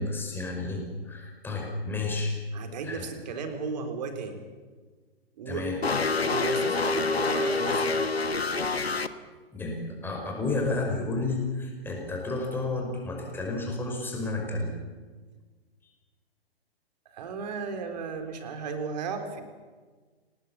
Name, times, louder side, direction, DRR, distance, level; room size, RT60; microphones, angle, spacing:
voice 1, 0.0-2.4 2.8-3.1 5.5-5.8 9.5-14.7, left 3 dB, 5° left, 1 dB, 5.4 m, -31 dB
voice 2, 2.5-4.4 5.4-5.7 6.1-8.1 17.1-19.4, right 5 dB, 40° right, 7 dB, 4.0 m, -35 dB
sound 1, 5.8-9.1, left 3 dB, 75° left, 1.5 m, -26 dB
29.0 x 19.5 x 7.3 m, 1.4 s
figure-of-eight pair, 120°, 31 cm